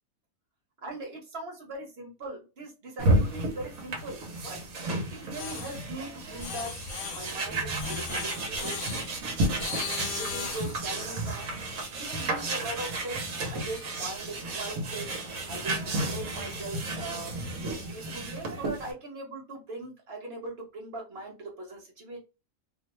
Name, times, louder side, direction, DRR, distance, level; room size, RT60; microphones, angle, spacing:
voice 1, 0.8-4.6 5.1-6.8 7.1-9.0 10.0-11.5 11.9-15.1 15.5-17.3 17.6-22.2, right 2 dB, 50° right, 0 dB, 1.2 m, -40 dB
sound 1, 3.0-18.9, right 2 dB, 80° right, 1.2 m, -32 dB
sound 2, 5.4-5.8 6.4-7.4 7.8-9.1 9.6-10.8, left 6 dB, 80° left, 1.0 m, -37 dB
2.7 x 2.0 x 3.0 m, 0.29 s
omnidirectional pair, 1.4 m